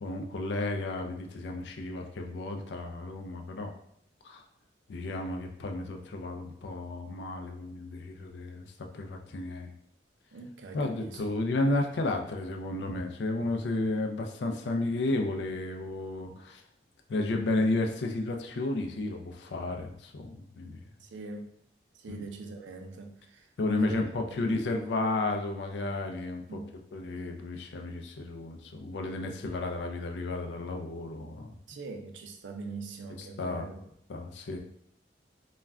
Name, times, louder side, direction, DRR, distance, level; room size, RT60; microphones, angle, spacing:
voice 1, 0.0-3.7 4.2-4.4 4.9-8.7 8.9-9.7 10.7-16.6 17.1-20.8 22.1-22.2 23.6-26.6 26.9-31.5 33.4-33.7 34.1-34.6, left 2 dB, 75° left, 4 dB, 0.4 m, -32 dB
voice 2, 10.3-11.2 21.0-21.5 21.9-24.0 24.4-24.6 26.5-26.7 31.7-33.8, right 3 dB, 90° right, 4 dB, 0.4 m, -42 dB
2.3 x 2.1 x 3.4 m, 0.73 s
head